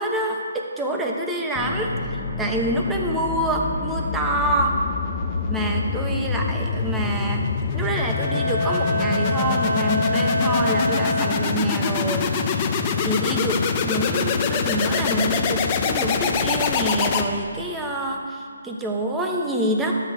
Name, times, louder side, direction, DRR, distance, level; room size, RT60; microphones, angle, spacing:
voice 1, 0.0-4.8 5.5-7.5 7.7-12.7 13.0-19.9, right 1 dB, 10° right, 0 dB, 0.9 m, -26 dB
sound 1, 1.5-17.7, left 5 dB, 25° left, 0.6 m, -25 dB
Bowed string instrument, 7.7-11.8, left 1 dB, 65° left, 1.3 m, -26 dB
12.5 x 8.0 x 3.5 m, 2.3 s
figure-of-eight pair, 150°, 0 cm